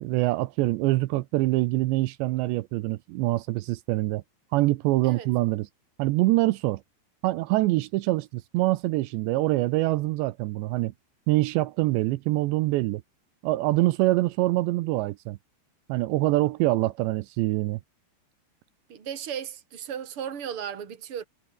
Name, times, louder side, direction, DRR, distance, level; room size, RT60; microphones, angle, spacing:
voice 1, 0.0-4.2 4.5-5.7 6.0-6.8 7.2-10.9 11.3-13.0 13.4-15.4 15.9-17.8, right 19 dB, 80° right, 2.8 m, -25 dB
voice 2, 18.9-21.2, right 8 dB, 35° right, 3.2 m, -35 dB
omnidirectional pair, 5.4 m